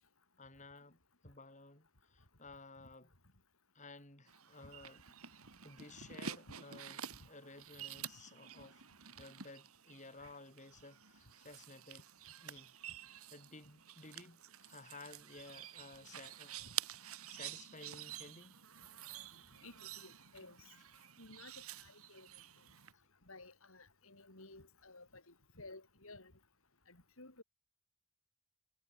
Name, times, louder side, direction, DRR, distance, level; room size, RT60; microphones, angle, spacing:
voice 1, 0.4-3.1 3.7-5.0 5.3-8.8 9.2-12.0 12.4-12.7 13.3-16.7 17.0-18.6 21.0-21.1, left 3 dB, 35° left, 5.7 m, -55 dB
sound 1, 4.3-22.9, right 10 dB, 75° right, 2.6 m, -49 dB
voice 2, 19.6-20.6 21.2-21.5 21.8-22.3 23.3-26.3 26.9-27.4, left 2 dB, 65° left, 5.1 m, -55 dB
head